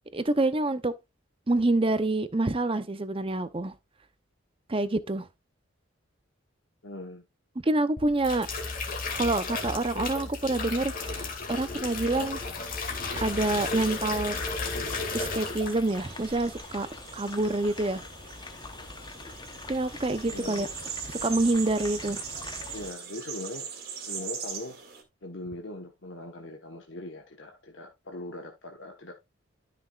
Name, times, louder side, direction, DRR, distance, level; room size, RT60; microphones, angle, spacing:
voice 1, 0.1-0.9 1.5-3.7 4.7-5.3 7.6-8.5 9.1-12.4 13.2-14.4 15.1-16.9 17.1-18.0 19.7-20.7 21.1-22.2, right 2 dB, 25° right, 0.7 m, -27 dB
voice 2, 6.8-7.3 20.3-20.8 22.7-23.7 24.1-24.8 25.2-29.1, left 2 dB, 60° left, 1.2 m, -40 dB
sound 1, 8.0-16.0 16.3-16.6, left 3 dB, 40° left, 2.2 m, -33 dB
sound 2, 13.1-22.9, left 3 dB, 20° left, 0.9 m, -44 dB
sound 3, 15.9-25.0, right 6 dB, 45° right, 2.1 m, -40 dB
13.0 x 6.0 x 2.4 m
head